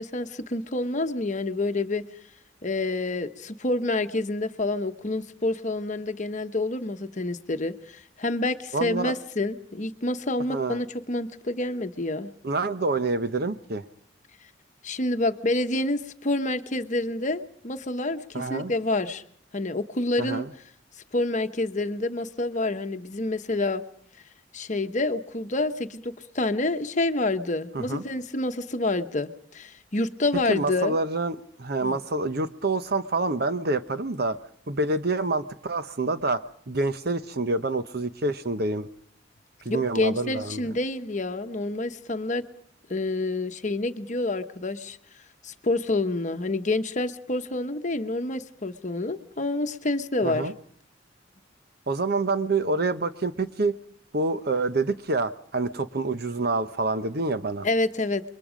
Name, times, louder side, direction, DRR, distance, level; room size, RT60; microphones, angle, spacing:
voice 1, 0.0-2.0 2.6-12.3 14.8-19.2 19.5-20.5 21.1-23.8 24.5-30.9 31.8-32.0 39.7-42.4 42.9-45.0 45.4-50.5 57.6-58.2, left 2 dB, 40° left, 1.0 m, -28 dB
voice 2, 8.7-9.1 10.5-10.8 12.4-13.8 18.3-18.7 20.2-20.5 27.7-28.0 30.5-34.4 34.7-38.9 39.6-40.6 50.2-50.5 51.9-53.8 54.1-57.7, right 3 dB, 55° right, 0.9 m, -27 dB
28.5 x 22.5 x 5.1 m
head